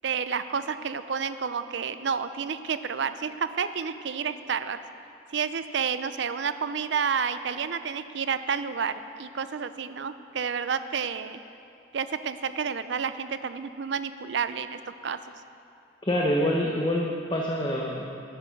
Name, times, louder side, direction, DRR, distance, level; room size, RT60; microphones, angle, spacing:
voice 1, 0.0-4.8 5.3-11.4 11.9-15.2, right 6 dB, 65° right, 12 dB, 0.5 m, -30 dB
voice 2, 16.0-18.0, equal, 25° left, -1 dB, 0.8 m, -26 dB
12.0 x 10.0 x 5.1 m, 2.6 s
head